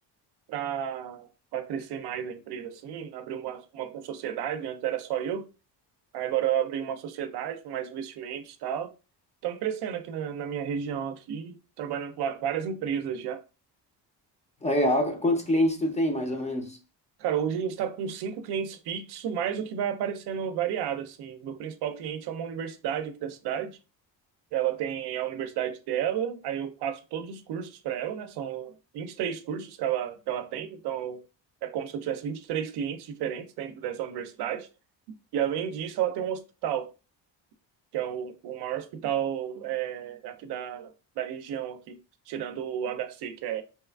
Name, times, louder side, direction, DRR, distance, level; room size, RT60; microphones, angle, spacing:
voice 1, 0.5-1.3 1.5-5.5 6.1-8.9 9.4-13.4 17.2-23.8 24.5-31.2 31.6-34.7 35.3-36.9 37.9-42.0 42.3-43.6, right 9 dB, 70° right, 0.5 m, -32 dB
voice 2, 14.6-16.8, left 1 dB, 15° left, 0.5 m, -25 dB
2.9 x 2.3 x 2.2 m
cardioid pair, 110°, 42 cm